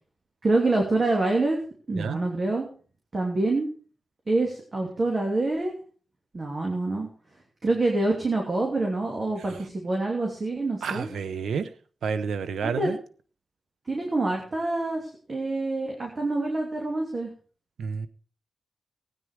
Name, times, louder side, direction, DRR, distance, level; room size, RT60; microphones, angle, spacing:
voice 1, 0.4-1.6 1.9-2.7 3.1-3.7 4.3-5.7 6.3-7.1 7.6-11.1 12.6-12.9 13.9-17.3, right 2 dB, 40° right, 0 dB, 2.9 m, -26 dB
voice 2, 10.8-11.7 12.0-13.0 17.8-18.1, right 6 dB, 90° right, 13 dB, 0.9 m, -30 dB
16.5 x 9.4 x 4.9 m, 0.41 s
cardioid pair, 90°, 0 cm